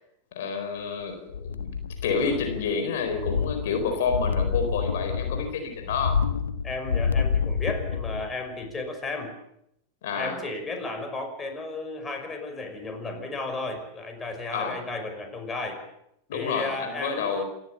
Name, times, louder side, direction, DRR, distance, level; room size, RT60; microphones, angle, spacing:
voice 1, 0.3-1.7 2.0-6.2 10.0-10.4 14.5-14.8 16.3-17.4, left 5 dB, 65° left, 6 dB, 4.3 m, -29 dB
sound 1, 1.3-2.8 3.0-8.4 8.7-8.8, left 6 dB, 85° left, 1.3 m, -28 dB
voice 2, 6.6-9.3 10.1-15.8 16.3-17.4, left 3 dB, 20° left, 5 dB, 5.6 m, -34 dB
28.0 x 14.0 x 6.9 m, 0.78 s
hypercardioid pair, 95°, 0 cm